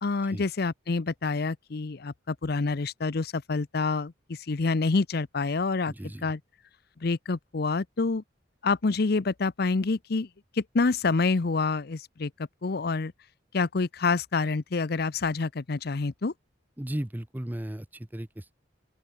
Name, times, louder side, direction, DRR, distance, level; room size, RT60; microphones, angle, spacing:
voice 1, 0.0-5.9 6.2-6.4 7.0-8.2 8.6-10.3 10.5-12.3 12.6-13.1 13.5-16.3, left 3 dB, 55° left, 0.6 m, -27 dB
voice 2, 5.8-6.3 16.8-18.5, right 1 dB, 10° right, 0.6 m, -36 dB
open air
head